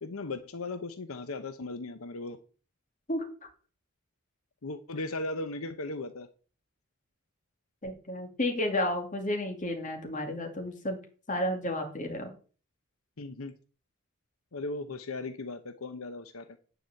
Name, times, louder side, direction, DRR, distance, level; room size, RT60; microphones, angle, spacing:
voice 1, 0.0-2.4 4.6-6.3 13.2-13.5 14.5-16.4, left 2 dB, 85° left, 9 dB, 0.9 m, -37 dB
voice 2, 7.8-11.0 11.3-12.3, left 1 dB, 35° left, 4 dB, 2.5 m, -32 dB
10.0 x 5.0 x 7.9 m, 0.39 s
head